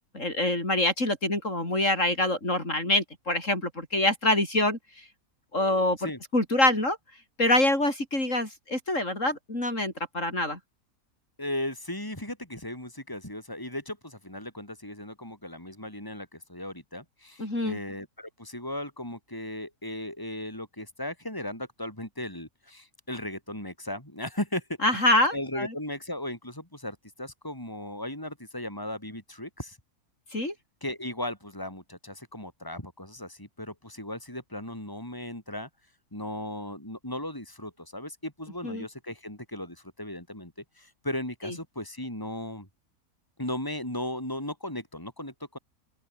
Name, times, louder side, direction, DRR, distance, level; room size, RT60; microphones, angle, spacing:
voice 1, 0.1-4.8 5.5-7.0 7.4-10.6 17.4-17.8 24.8-25.7 30.3-30.5 38.6-38.9 41.4-41.5, left 1 dB, 55° left, 7.4 m, -25 dB
voice 2, 11.4-24.6 24.9-25.0 25.3-29.8 30.8-35.7 36.1-40.5 40.8-42.7 43.4-45.6, left 1 dB, 15° left, 6.3 m, -36 dB
open air
omnidirectional pair, 1.5 m